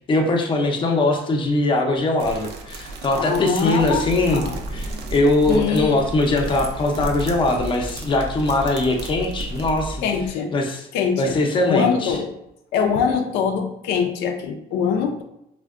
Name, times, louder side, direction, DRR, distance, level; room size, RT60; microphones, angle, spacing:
voice 1, 0.1-4.4 4.7-10.0 10.5-10.9 11.2-12.2, left 2 dB, 30° left, 2 dB, 0.5 m, -21 dB
sound 1, 2.2-9.8, right 2 dB, 80° right, 0.5 m, -37 dB
voice 2, 3.2-4.6 5.5-6.0 10.0-10.5 10.9-11.4 11.7-12.3 12.7-15.2, left 6 dB, 90° left, 4 dB, 0.4 m, -23 dB
sound 2, 3.8-10.3, right 2 dB, 35° right, 0.6 m, -33 dB
3.4 x 2.1 x 2.3 m, 0.81 s
cardioid pair, 110°, 17 cm